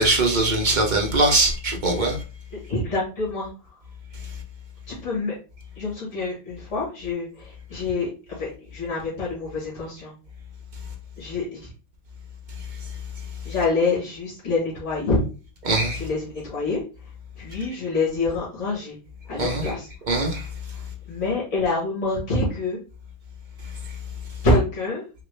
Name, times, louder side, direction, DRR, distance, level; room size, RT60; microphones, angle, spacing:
voice 1, 0.0-2.2 15.6-16.0 19.4-19.7 20.1-20.4, right 2 dB, 45° right, 0.6 m, -21 dB
voice 2, 2.5-3.5 4.9-5.3 5.8-8.1 8.4-10.1 11.2-11.7 13.4-15.2 15.9-16.8 17.4-19.0 19.3-19.9 21.1-22.8 24.4-25.0, left 3 dB, 55° left, 1.9 m, -26 dB
3.9 x 2.2 x 3.2 m
omnidirectional pair, 1.5 m